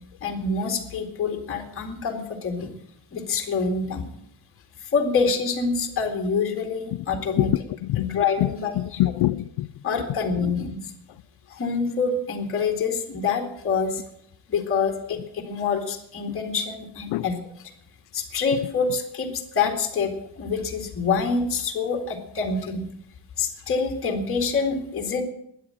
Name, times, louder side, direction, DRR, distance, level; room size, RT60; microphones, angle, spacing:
voice 1, 0.2-2.7 3.1-4.1 4.8-7.5 8.0-8.7 9.8-10.8 11.5-14.0 14.5-17.3 18.1-22.9 23.4-25.2, left 5 dB, 30° left, 2.4 m, -26 dB
voice 2, 7.4-9.8 10.4-10.5 16.3-16.4 17.1-17.3, left 16 dB, 80° left, 0.6 m, -26 dB
13.0 x 9.8 x 9.0 m
cardioid pair, 175°, 40 cm